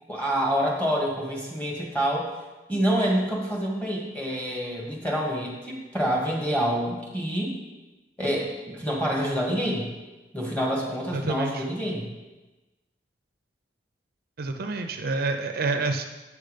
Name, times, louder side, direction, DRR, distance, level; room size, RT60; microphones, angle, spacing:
voice 1, 0.1-2.3 2.7-7.6 8.2-9.9 10.3-12.1, equal, 10° left, -3 dB, 1.9 m, -27 dB
voice 2, 11.1-11.6 14.4-16.1, right 3 dB, 55° right, 6 dB, 0.5 m, -28 dB
8.3 x 6.5 x 5.0 m, 1.1 s
head